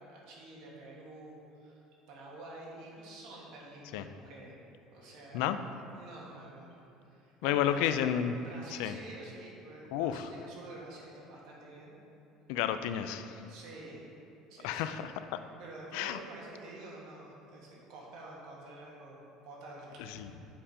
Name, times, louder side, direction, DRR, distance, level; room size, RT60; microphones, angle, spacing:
voice 1, 0.0-1.8 2.1-4.6 4.9-5.5 5.9-7.9 8.4-12.0 13.5-14.0 14.5-15.0 15.6-20.5, right 2 dB, 65° right, -4 dB, 1.7 m, -49 dB
voice 2, 7.4-8.4 8.7-9.0 9.9-10.3 12.5-13.4 14.6-15.1 15.9-16.2 20.0-20.3, left 10 dB, 80° left, 10 dB, 0.3 m, -31 dB
7.5 x 4.3 x 5.0 m, 2.7 s
cardioid pair, 145°, 0 cm